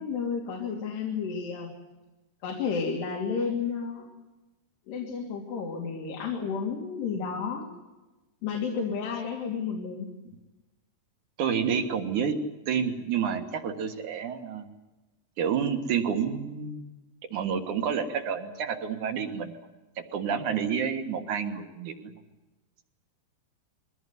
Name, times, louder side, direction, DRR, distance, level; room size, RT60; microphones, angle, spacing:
voice 1, 0.0-1.7 2.4-4.1 4.9-7.7 8.4-10.1, left 5 dB, 85° left, 0 dB, 4.8 m, -31 dB
voice 2, 11.4-12.4 12.7-14.7 15.4-16.9 17.3-19.5 20.0-22.1, right 7 dB, 60° right, 6 dB, 2.6 m, -29 dB
22.5 x 17.5 x 9.4 m, 1.1 s
omnidirectional pair, 4.7 m